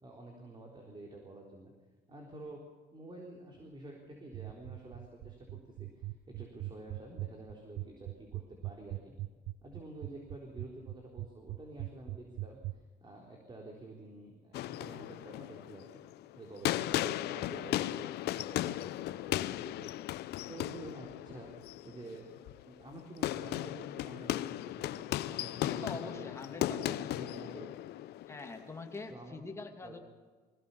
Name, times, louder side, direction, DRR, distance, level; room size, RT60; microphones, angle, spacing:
voice 1, 0.0-1.7 2.1-2.6 2.9-9.1 9.6-12.6 13.0-15.8 16.3-19.9 20.5-21.5 21.8-26.2 26.6-27.7 29.1-29.4 29.8-30.0, right 2 dB, 25° right, 1 dB, 3.9 m, -49 dB
sound 1, 4.3-12.7, right 17 dB, 85° right, 0.7 m, -40 dB
sound 2, 14.5-29.1, left 15 dB, 75° left, 0.7 m, -37 dB
voice 2, 25.6-27.0 28.3-30.0, left 3 dB, 15° left, 3 dB, 2.5 m, -44 dB
21.5 x 16.5 x 7.1 m, 1.4 s
cardioid pair, 110°, 17 cm